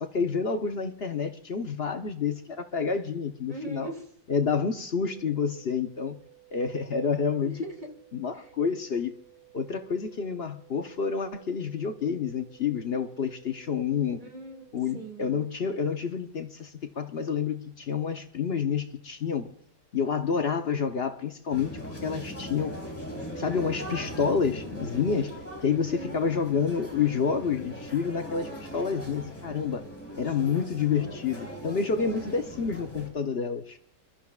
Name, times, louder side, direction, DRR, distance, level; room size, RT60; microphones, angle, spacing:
voice 1, 0.0-3.9 4.3-6.2 6.5-7.6 8.1-9.1 9.5-14.2 14.7-19.5 19.9-22.8 23.4-25.3 25.6-29.8 30.2-33.8, left 6 dB, 45° left, 7 dB, 0.9 m, -29 dB
voice 2, 3.5-4.0 7.4-7.9 8.3-8.5 14.2-14.7 14.9-15.4 25.7-26.2, right 2 dB, 25° right, 3 dB, 2.3 m, -40 dB
sound 1, 5.1-15.1, right 22 dB, 65° right, 2.0 m, -57 dB
sound 2, 21.5-33.1, equal, 10° left, 3.8 m, -40 dB
28.5 x 13.0 x 2.4 m, 0.66 s
omnidirectional pair, 1.8 m